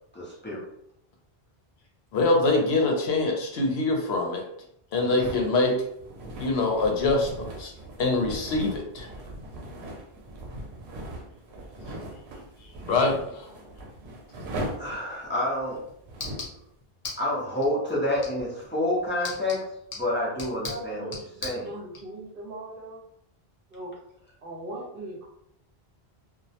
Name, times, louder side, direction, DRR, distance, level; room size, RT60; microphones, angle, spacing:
voice 1, 0.1-0.7 5.1-5.2 14.8-15.8 17.2-19.7 19.9-21.1 21.4-21.7, left 1 dB, 15° left, -6 dB, 0.5 m, -28 dB
voice 2, 2.1-4.4 4.9-5.8 6.4-7.7 8.0-9.1 12.9-13.5, left 2 dB, 80° left, 2 dB, 0.8 m, -24 dB
sound 1, 5.2-16.6, right 1 dB, 90° right, 0.8 m, -39 dB
sound 2, 15.4-22.0, left 3 dB, 40° left, 0.8 m, -42 dB
voice 3, 20.7-23.0 23.7-24.0 24.4-25.3, right 1 dB, 60° right, -3 dB, 0.9 m, -39 dB
2.3 x 2.0 x 2.7 m, 0.75 s
omnidirectional pair, 1.1 m